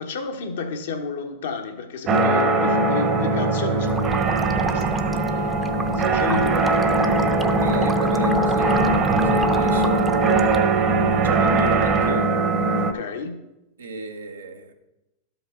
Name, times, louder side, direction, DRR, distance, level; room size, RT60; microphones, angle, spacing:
voice 1, 0.0-6.7 7.3-7.4 7.7-7.8 12.8-13.4, left 5 dB, 75° left, 4 dB, 1.0 m, -32 dB
sound 1, 2.1-12.9, right 3 dB, 35° right, 0.9 m, -20 dB
sound 2, 3.8-10.6, right 2 dB, 10° right, 0.6 m, -31 dB
voice 2, 7.6-10.8 11.1-12.3 13.8-14.7, right 5 dB, 90° right, 5 dB, 0.9 m, -30 dB
12.0 x 5.3 x 3.7 m, 0.95 s
hypercardioid pair, 105°, 0 cm